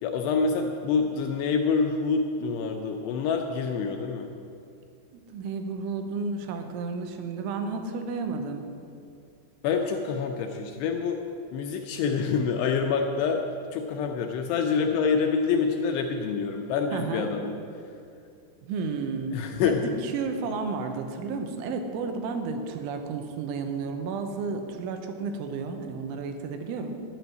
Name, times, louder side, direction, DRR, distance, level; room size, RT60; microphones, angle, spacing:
voice 1, 0.0-4.3 9.6-11.2 11.5-13.4 13.7-17.6 19.3-19.9, left 5 dB, 80° left, 3 dB, 2.5 m, -26 dB
voice 2, 5.1-8.7 16.9-17.3 18.6-27.1, right 4 dB, 85° right, 6 dB, 3.3 m, -32 dB
12.0 x 6.1 x 9.3 m, 2.4 s
omnidirectional pair, 5.5 m